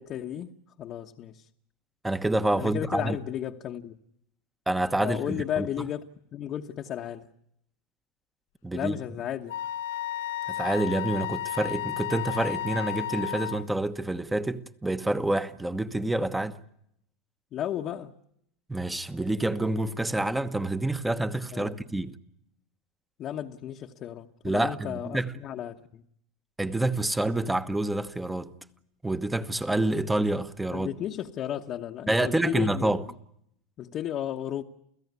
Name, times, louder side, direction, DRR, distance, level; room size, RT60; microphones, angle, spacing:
voice 1, 0.0-1.5 2.5-4.0 5.0-6.0 6.3-7.3 8.7-9.6 17.5-18.1 21.5-21.8 23.2-26.0 30.7-32.9 33.8-34.6, left 10 dB, 35° left, 1.1 m, -34 dB
voice 2, 2.0-3.2 4.7-5.7 8.6-9.0 10.5-16.6 18.7-22.1 24.4-25.3 26.6-28.5 29.0-30.9 32.1-33.0, right 2 dB, 5° right, 1.1 m, -28 dB
Wind instrument woodwind instrument, 9.5-13.7, left 12 dB, 80° left, 1.1 m, -33 dB
29.5 x 16.5 x 9.6 m
supercardioid pair, 140°, 0 cm